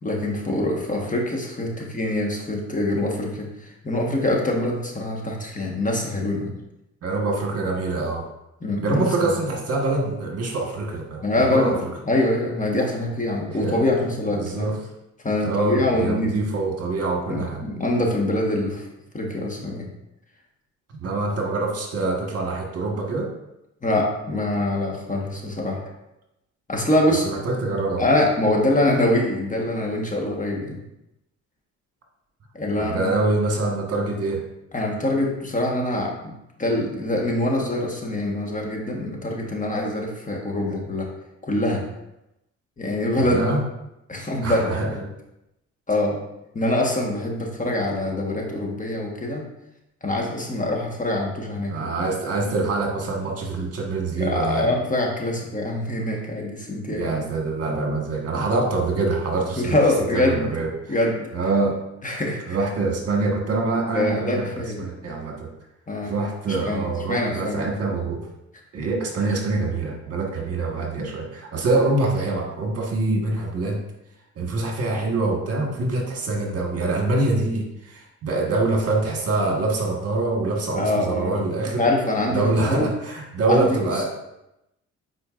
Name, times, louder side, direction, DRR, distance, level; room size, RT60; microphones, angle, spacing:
voice 1, 0.0-6.5 8.6-9.1 11.2-11.8 12.1-14.7 15.2-16.3 17.3-18.9 19.1-19.9 23.8-25.8 26.7-27.2 28.0-30.8 32.5-33.1 34.7-36.3 36.6-41.1 41.4-41.8 42.8-43.6 44.1-45.1 45.9-46.2 46.5-49.5 50.0-51.9 54.2-57.1 59.6-60.5 60.9-61.2 62.0-62.6 63.9-64.8 65.9-66.1 66.6-67.7 80.8-81.5 81.8-82.9 83.5-83.7 83.9-84.0, left 1 dB, 25° left, -1 dB, 1.4 m, -24 dB
voice 2, 7.0-8.2 8.8-11.7 13.6-13.8 14.3-14.8 15.4-17.7 21.0-23.3 27.3-28.0 32.7-34.4 43.2-43.6 44.4-44.9 51.7-54.7 56.9-59.8 60.1-61.0 61.3-61.8 62.5-64.5 64.8-65.5 66.0-68.2 68.7-73.8 74.3-81.8 82.3-84.1, right 3 dB, 55° right, 0 dB, 1.5 m, -25 dB
8.7 x 4.4 x 2.5 m, 0.89 s
cardioid pair, 90°, 30 cm